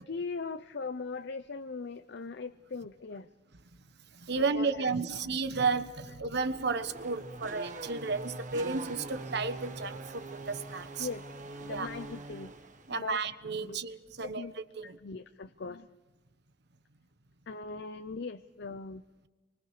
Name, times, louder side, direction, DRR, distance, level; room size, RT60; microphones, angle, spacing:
voice 1, 0.0-3.3 4.4-4.9 11.0-11.2 11.6-13.2 13.6-13.8 14.2-14.5 14.8-15.9 17.5-19.0, left 4 dB, 60° left, 0.6 m, -40 dB
voice 2, 4.1-11.1 11.7-11.9 12.9-14.4 14.8-15.0, right 4 dB, 60° right, 1.2 m, -33 dB
Race car auto racing / Accelerating revving vroom, 6.3-13.0, right 2 dB, 40° right, 1.4 m, -43 dB
28.5 x 24.5 x 4.9 m
head